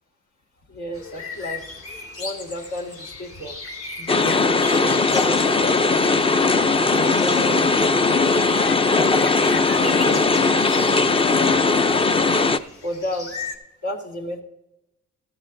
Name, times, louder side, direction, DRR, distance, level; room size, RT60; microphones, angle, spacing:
voice 1, 0.7-1.6 2.2-3.6 4.0-6.2 6.9-8.3 8.9-11.1 11.9-12.3 12.8-13.4 13.8-14.4, equal, 70° left, 2 dB, 1.9 m, -33 dB
sound 1, 0.9-13.6, left 3 dB, 50° left, 1.8 m, -37 dB
sound 2, 4.1-12.6, left 3 dB, 20° left, 0.4 m, -19 dB
13.5 x 12.5 x 2.6 m, 0.91 s
cardioid pair, 90°, 30 cm